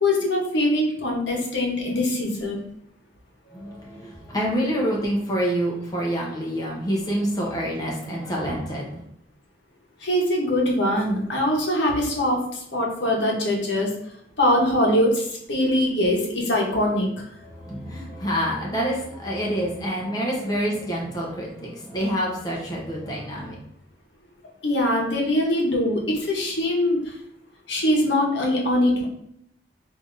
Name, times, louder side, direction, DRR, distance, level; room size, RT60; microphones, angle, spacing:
voice 1, 0.0-2.6 10.0-14.0 14.4-17.1 24.6-27.1 27.7-29.1, left 1 dB, 70° left, -1 dB, 1.0 m, -22 dB
voice 2, 3.5-9.0 17.4-23.6, equal, 20° left, -3 dB, 0.7 m, -27 dB
3.3 x 2.6 x 3.7 m, 0.72 s
head